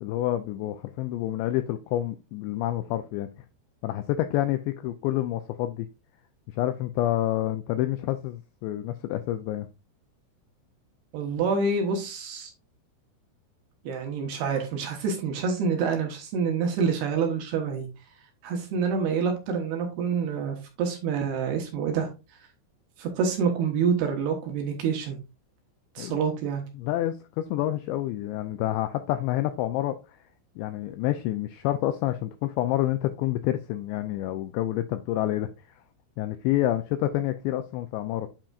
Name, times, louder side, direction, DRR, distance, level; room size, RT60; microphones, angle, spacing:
voice 1, 0.0-3.3 3.8-5.9 6.5-9.7 26.0-26.2 26.7-30.0 30.6-35.5 36.2-38.3, left 14 dB, 85° left, 2.5 m, -28 dB
voice 2, 11.1-12.5 13.8-17.9 18.4-22.1 23.0-25.2 26.0-26.6, right 5 dB, 70° right, 2.8 m, -27 dB
8.9 x 5.7 x 2.4 m
omnidirectional pair, 5.6 m